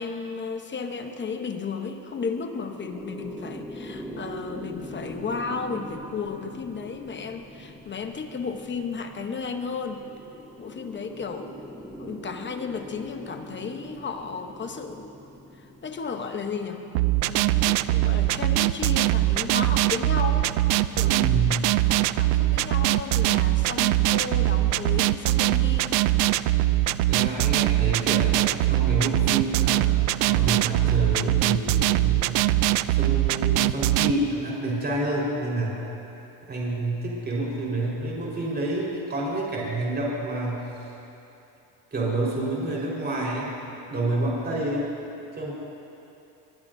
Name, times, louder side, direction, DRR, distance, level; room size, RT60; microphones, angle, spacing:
voice 1, 0.0-10.0 10.6-11.5 12.0-15.1 15.5-16.8 17.3-20.5 20.8-21.5 21.8-26.0, left 5 dB, 25° left, 6 dB, 0.9 m, -34 dB
sound 1, 1.4-18.5, equal, 5° right, 1.2 m, -43 dB
sound 2, 16.9-34.1, right 16 dB, 90° right, 0.6 m, -22 dB
voice 2, 20.9-21.7 27.1-30.0 30.2-32.5 32.9-35.8 36.5-40.7 41.9-43.5 43.9-44.9 45.4-45.5, right 2 dB, 20° right, -4 dB, 4.4 m, -28 dB
22.5 x 21.0 x 2.7 m, 2.9 s
supercardioid pair, 115°, 47 cm